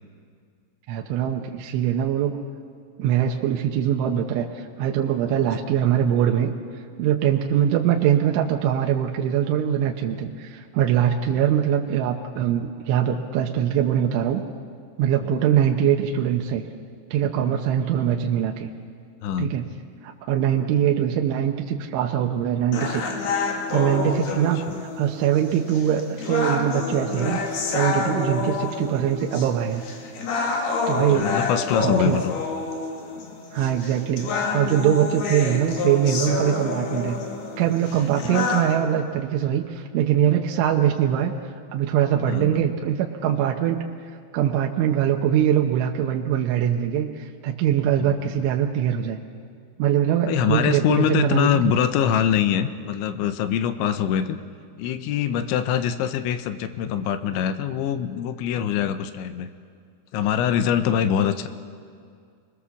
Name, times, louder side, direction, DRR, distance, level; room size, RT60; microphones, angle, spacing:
voice 1, 0.9-2.4 3.0-6.5 7.0-14.4 15.0-16.6 17.1-18.7 19.4-19.7 20.0-23.2 23.7-29.9 30.9-31.3 31.8-32.2 33.5-37.2 37.6-43.8 44.3-49.2 49.8-51.8, right 10 dB, 80° right, 2 dB, 3.3 m, -22 dB
voice 2, 19.2-19.6 24.7-24.8 30.9-32.3 42.3-42.6 48.0-48.1 50.3-54.4 54.8-59.5 60.1-61.5, left 9 dB, 80° left, 10 dB, 3.1 m, -24 dB
sound 1, 22.7-38.7, left 4 dB, 60° left, 3.9 m, -28 dB
27.5 x 21.0 x 7.2 m, 2.2 s
omnidirectional pair, 5.6 m